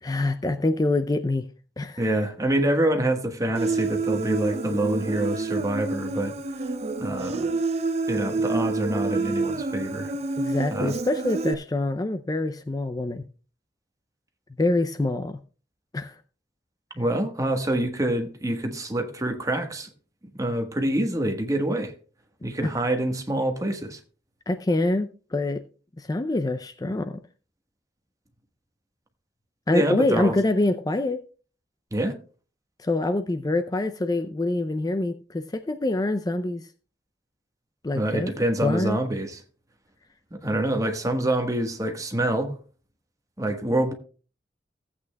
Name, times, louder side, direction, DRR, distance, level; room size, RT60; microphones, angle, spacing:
voice 1, 0.0-1.5 1.8-2.0 10.4-13.2 14.6-15.4 15.9-16.2 24.5-25.6 26.0-27.2 29.7-31.2 32.8-36.7 37.8-38.3 38.6-39.0, left 2 dB, 20° left, 0.4 m, -25 dB
voice 2, 2.0-6.3 7.0-7.6 8.1-10.1 10.7-10.9 16.9-19.9 20.4-21.9 22.4-24.0 29.7-30.4 31.9-32.1 37.9-39.4 40.4-42.5 43.4-43.9, right 1 dB, 20° right, 1.3 m, -26 dB
Human voice, 3.5-11.5, right 3 dB, 35° right, 0.6 m, -28 dB
16.0 x 8.5 x 2.3 m
head